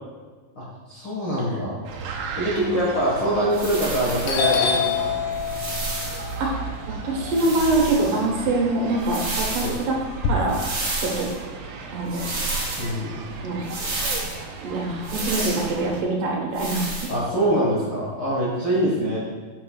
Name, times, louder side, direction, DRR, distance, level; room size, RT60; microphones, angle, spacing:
voice 1, 0.5-1.8 2.3-5.2 9.6-9.7 12.8-13.2 17.1-19.2, right 1 dB, 45° left, -6 dB, 1.6 m, -24 dB
sound 1, 1.8-16.0, right 4 dB, 85° right, 2.6 m, -36 dB
sound 2, 3.5-4.5 5.3-6.3 7.3-8.2 9.0-9.8 10.5-11.4 12.1-12.9 13.6-14.4 15.0-15.7 16.5-17.1, right 2 dB, 40° right, 2.7 m, -30 dB
Doorbell, 3.7-4.0 4.3-8.4 8.8-10.3, left 7 dB, 70° left, 2.0 m, -27 dB
voice 2, 7.0-10.0 10.3-10.6 11.0-11.3 11.9-12.2 13.4-13.7 14.1-14.2 14.6-17.1 19.0-19.2, right 2 dB, 70° right, -1 dB, 2.8 m, -24 dB
9.5 x 8.6 x 2.4 m, 1.4 s
omnidirectional pair, 4.0 m